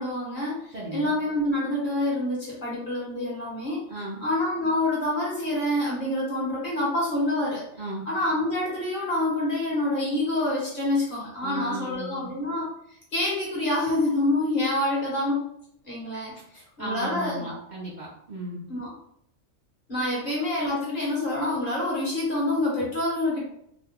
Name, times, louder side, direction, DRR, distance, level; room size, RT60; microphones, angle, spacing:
voice 1, 0.0-3.8 4.2-7.6 8.1-12.7 13.1-15.4 15.8-16.3 16.8-17.6 18.7-18.9 19.9-23.4, left 1 dB, 45° left, -5 dB, 1.0 m, -27 dB
voice 2, 0.7-1.2 3.9-4.2 7.8-8.0 11.4-12.3 16.5-18.6, right 1 dB, 45° right, -7 dB, 0.7 m, -35 dB
2.8 x 2.2 x 3.5 m, 0.72 s
omnidirectional pair, 1.4 m